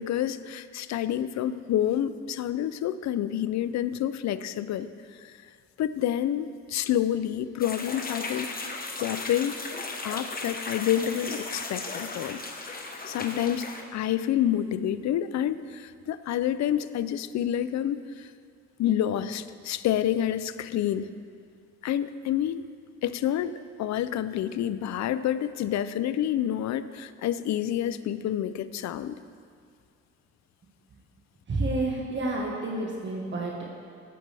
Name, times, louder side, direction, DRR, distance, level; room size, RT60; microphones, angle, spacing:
voice 1, 0.0-4.9 5.8-9.6 10.0-12.4 13.1-18.3 18.8-21.0 21.8-22.6 23.0-29.2, left 11 dB, 65° left, 14 dB, 0.5 m, -28 dB
sound 1, 7.6-13.8, left 3 dB, 30° left, 1.2 m, -36 dB
voice 2, 31.5-33.6, right 2 dB, 40° right, -2 dB, 1.5 m, -29 dB
15.5 x 8.5 x 3.5 m, 2.2 s
cardioid pair, 90°, 30 cm